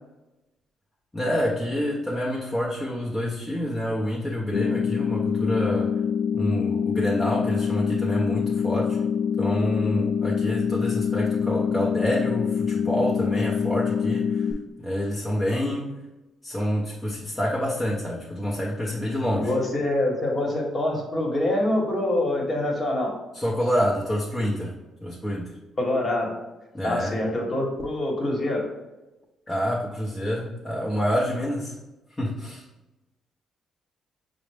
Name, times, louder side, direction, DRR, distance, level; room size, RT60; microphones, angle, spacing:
voice 1, 1.1-5.9 6.3-9.1 9.4-14.5 14.8-15.9 16.4-19.5 23.3-25.6 26.7-27.2 29.5-31.7 32.2-32.6, equal, 15° left, -6 dB, 0.7 m, -27 dB
sound 1, 4.5-14.5, left 7 dB, 75° left, 0.3 m, -25 dB
voice 2, 19.3-23.1 25.8-26.3 26.8-28.6, left 1 dB, 35° left, -1 dB, 1.1 m, -25 dB
5.6 x 2.0 x 3.3 m, 1.0 s
cardioid pair, 90°, 0 cm